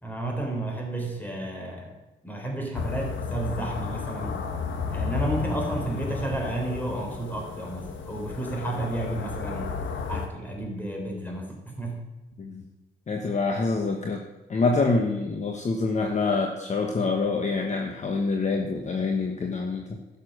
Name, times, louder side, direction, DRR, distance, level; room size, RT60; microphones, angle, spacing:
voice 1, 0.0-1.9 2.2-4.4 4.9-9.7 10.1-12.0, right 1 dB, 10° left, 1 dB, 3.5 m, -32 dB
sound 1, 2.7-10.3, left 5 dB, 70° left, 1.5 m, -33 dB
voice 2, 13.1-14.2 14.5-20.0, left 3 dB, 35° left, 2 dB, 1.2 m, -26 dB
11.5 x 7.1 x 6.4 m, 1.0 s
cardioid pair, 90°, 20 cm